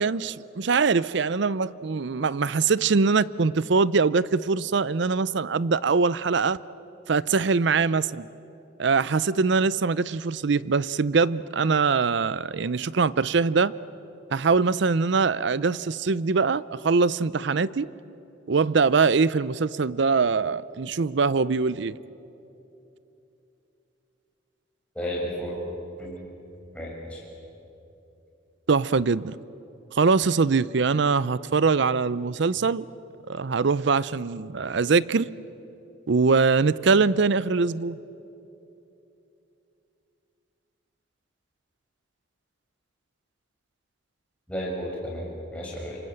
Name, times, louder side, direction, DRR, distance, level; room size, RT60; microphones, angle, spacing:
voice 1, 0.0-6.6 7.1-8.3 8.8-13.7 14.3-17.9 18.5-22.0 28.7-29.3 29.9-32.9 33.3-35.3 36.1-38.0, right 4 dB, 60° right, 18 dB, 0.5 m, -23 dB
voice 2, 24.9-25.6 26.0-26.1 26.7-27.2 44.5-46.0, equal, 5° left, -4 dB, 6.1 m, -32 dB
27.5 x 25.0 x 7.9 m, 2.9 s
head